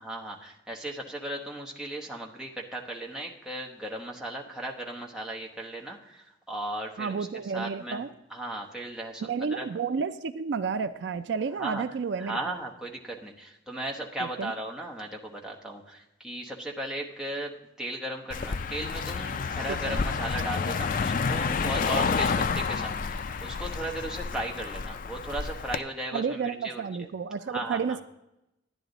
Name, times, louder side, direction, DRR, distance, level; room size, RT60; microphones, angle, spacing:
voice 1, 0.0-7.3 7.5-8.0 8.3-9.7 11.6-11.8 12.2-27.1 27.5-28.0, right 1 dB, 5° right, -2 dB, 1.0 m, -36 dB
voice 2, 7.0-8.1 9.2-12.4 14.2-14.5 19.7-20.0 26.1-28.0, right 5 dB, 65° right, 12 dB, 0.4 m, -31 dB
Car passing by, 18.3-25.8, left 5 dB, 45° left, 0.4 m, -29 dB
11.0 x 10.0 x 4.0 m, 0.88 s
head